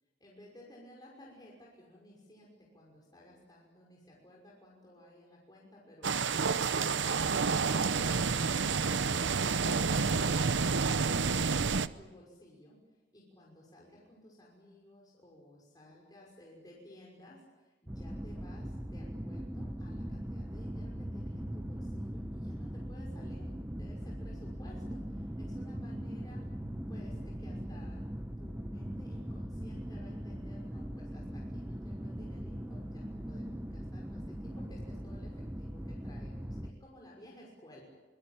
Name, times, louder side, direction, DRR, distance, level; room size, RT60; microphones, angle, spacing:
voice 1, 0.2-12.8 13.1-23.5 23.8-26.4 26.9-37.9, left 1 dB, 20° left, -3 dB, 5.9 m, -56 dB
sound 1, 6.0-11.9, right 5 dB, 75° right, 0.8 m, -29 dB
sound 2, 17.9-36.7, equal, 10° right, 1.1 m, -40 dB
25.5 x 21.5 x 9.0 m, 1.2 s
head